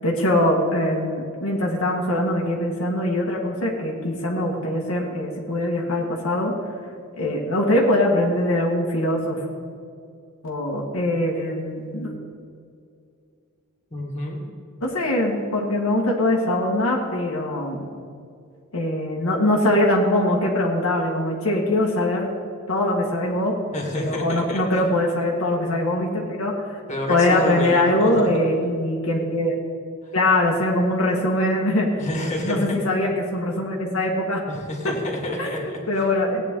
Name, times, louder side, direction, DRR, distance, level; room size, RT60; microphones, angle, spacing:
voice 1, 0.0-6.5 7.1-9.4 10.4-12.1 14.8-17.9 18.7-22.3 22.7-23.5 23.9-26.8 27.1-29.5 30.1-31.9 32.3-34.4 34.8-34.9 35.4-36.4, left 1 dB, 80° left, -1 dB, 1.7 m, -22 dB
voice 2, 13.9-14.4 23.7-24.9 26.9-28.3 30.0-30.1 32.0-32.8 34.5-35.8, left 1 dB, 35° left, 0 dB, 2.0 m, -29 dB
17.0 x 8.9 x 3.8 m, 2.3 s
head